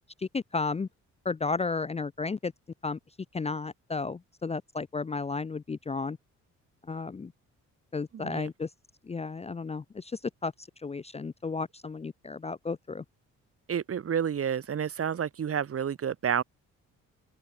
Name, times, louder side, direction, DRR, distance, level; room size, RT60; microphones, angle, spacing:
voice 1, 0.2-0.9 1.2-2.5 2.8-3.0 3.3-6.2 6.9-7.3 7.9-8.7 9.1-13.0, left 4 dB, 20° left, 0.6 m, -33 dB
voice 2, 8.1-8.5 13.7-16.4, right 8 dB, 50° right, 2.2 m, -30 dB
open air
cardioid pair, 90°, 30 cm